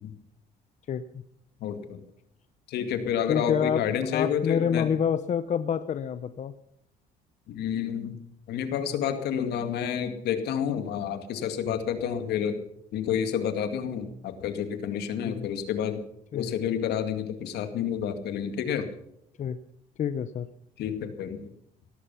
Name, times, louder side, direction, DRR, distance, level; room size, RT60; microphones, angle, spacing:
voice 1, 0.9-1.2 3.3-6.5 15.2-15.5 16.3-16.6 19.4-19.6 20.0-20.5, left 8 dB, 45° left, 12 dB, 0.8 m, -28 dB
voice 2, 1.6-2.0 2.7-4.9 7.5-8.2 8.5-12.6 12.9-16.0 16.3-18.9 20.8-21.4, left 8 dB, 75° left, 8 dB, 2.2 m, -29 dB
17.5 x 13.5 x 5.7 m, 0.74 s
cardioid pair, 110°, 17 cm